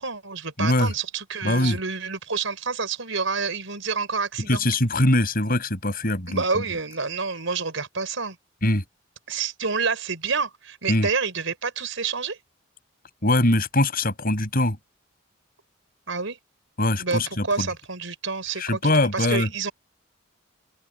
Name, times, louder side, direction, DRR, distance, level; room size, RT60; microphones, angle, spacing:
voice 1, 0.0-4.6 6.3-8.4 9.3-12.4 16.1-16.4 17.0-19.7, right 4 dB, 80° right, 4.6 m, -28 dB
voice 2, 0.6-0.9 1.4-1.8 4.5-6.4 8.6-8.8 10.9-11.1 13.2-14.8 16.8-17.7 18.6-19.5, left 1 dB, 50° left, 6.9 m, -22 dB
open air
head